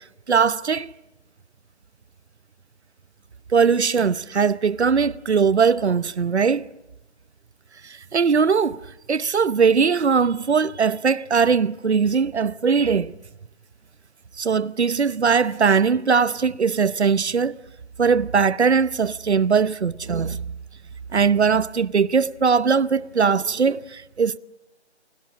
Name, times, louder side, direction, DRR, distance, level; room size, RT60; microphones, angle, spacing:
voice 1, 0.3-0.9 3.5-6.7 7.8-8.8 9.1-13.1 14.4-17.6 18.0-20.5 21.1-24.4, right 5 dB, 70° right, 0.9 m, -20 dB
28.5 x 25.0 x 7.5 m
figure-of-eight pair, 175°, 34 cm